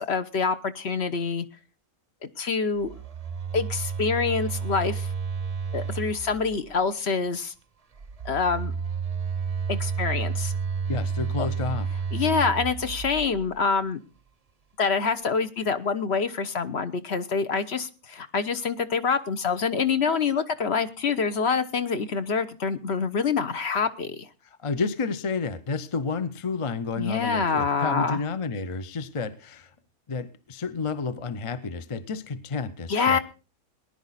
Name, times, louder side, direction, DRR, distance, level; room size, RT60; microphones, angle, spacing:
voice 1, 0.0-1.5 2.2-2.9 3.5-5.1 5.7-7.5 8.2-8.7 9.7-10.5 11.4-11.5 12.1-14.0 14.8-24.3 27.0-28.2 32.9-33.2, left 5 dB, 50° left, 10 dB, 1.1 m, -26 dB
Telephone, 2.8-6.8 7.9-13.7, right 6 dB, 35° right, 0.6 m, -31 dB
voice 2, 10.9-11.9 24.6-29.7 30.1-33.2, left 4 dB, 30° left, 13 dB, 0.6 m, -30 dB
19.0 x 10.5 x 4.1 m, 0.32 s
omnidirectional pair, 1.5 m